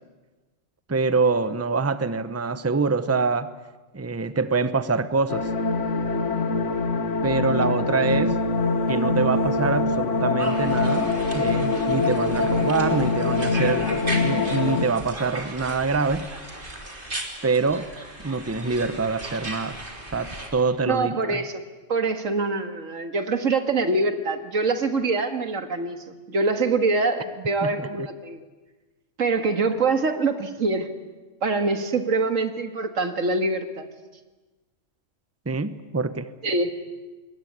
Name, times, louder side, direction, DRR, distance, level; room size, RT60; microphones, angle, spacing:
voice 1, 0.9-3.5 3.9-5.5 7.2-8.4 8.9-16.3 17.4-17.9 18.2-19.8 20.1-21.4 27.6-28.1 35.5-36.3, right 4 dB, 15° right, 13 dB, 0.8 m, -25 dB
sound 1, 5.3-14.9, left 3 dB, 70° left, 1.9 m, -24 dB
sound 2, 10.4-20.5, right 1 dB, 40° right, 3.6 m, -36 dB
voice 2, 20.9-26.0 26.3-28.4 29.2-30.9 31.4-33.9 36.4-36.8, right 3 dB, 90° right, 8 dB, 2.2 m, -24 dB
26.5 x 21.5 x 9.5 m, 1.2 s
omnidirectional pair, 1.3 m